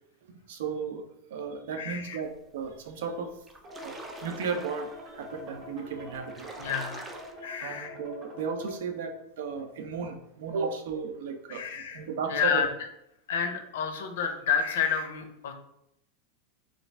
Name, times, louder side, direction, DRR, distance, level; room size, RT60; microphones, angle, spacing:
voice 1, 0.2-3.3 3.8-6.5 7.6-11.6 11.9-12.7, right 5 dB, 80° right, 6 dB, 0.5 m, -35 dB
voice 2, 1.8-2.2 6.6-7.0 7.4-8.0 11.5-12.0 12.3-12.7 13.3-15.5, left 7 dB, 85° left, 6 dB, 0.6 m, -30 dB
sound 1, 2.9-3.0 3.3-5.1 5.8-5.9 6.1-7.3, right 2 dB, 10° right, 0.3 m, -44 dB
sound 2, 3.6-8.8, left 2 dB, 30° right, 0.7 m, -46 dB
3.1 x 2.5 x 3.2 m, 0.79 s
supercardioid pair, 160°, 0 cm